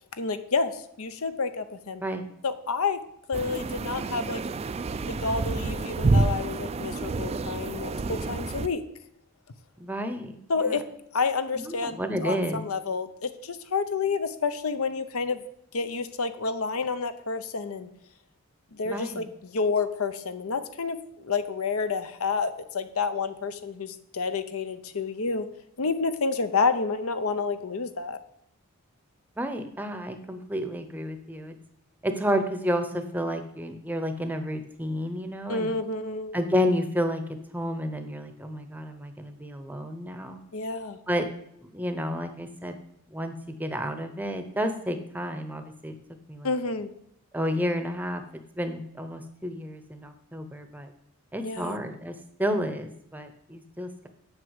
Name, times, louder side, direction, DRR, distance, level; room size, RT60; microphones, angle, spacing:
voice 1, 0.2-2.0 2.4-3.0 3.3-4.4 5.1-8.8 10.5-10.8 11.1-15.4 15.7-17.9 18.7-25.5 25.8-28.2 35.5-36.4 40.5-41.0 46.4-46.9 51.4-51.8, left 4 dB, 75° left, 11 dB, 0.7 m, -29 dB
sound 1, 3.3-8.7, right 3 dB, 30° right, 0.3 m, -28 dB
voice 2, 9.8-10.8 11.5-12.6 18.8-19.3 29.4-31.5 32.0-35.7 36.3-37.2 37.5-40.4 41.1-41.3 41.6-42.8 43.1-45.9 46.3-46.5 47.3-48.2 48.5-50.9 51.3-54.1, equal, 10° right, 8 dB, 0.7 m, -31 dB
7.8 x 6.0 x 8.0 m, 0.74 s
head